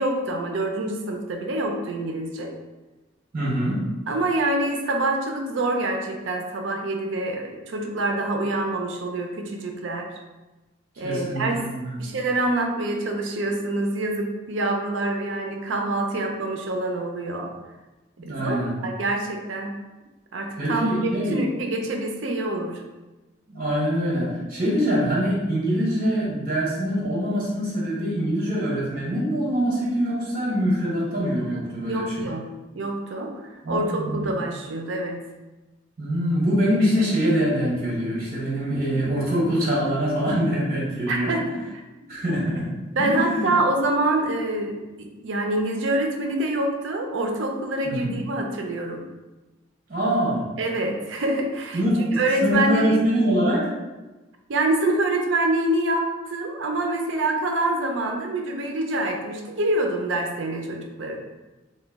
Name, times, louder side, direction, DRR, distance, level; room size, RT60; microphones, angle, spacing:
voice 1, 0.0-2.5 4.1-10.1 11.0-11.5 12.0-17.5 18.2-19.8 20.3-20.9 21.2-22.8 31.9-32.5 32.7-33.3 33.7-35.2 41.1-41.7 42.3-42.4 43.0-49.0 50.6-51.8 52.2-53.0 54.5-61.2, right 2 dB, 70° right, 3 dB, 0.4 m, -26 dB
voice 2, 3.3-3.8 11.0-12.0 18.2-18.7 20.6-21.4 23.5-32.3 33.6-34.3 36.0-41.3 42.1-43.5 47.8-48.1 49.9-50.4 51.7-53.7, equal, 45° right, -5 dB, 1.2 m, -24 dB
2.9 x 2.2 x 3.5 m, 1.1 s
head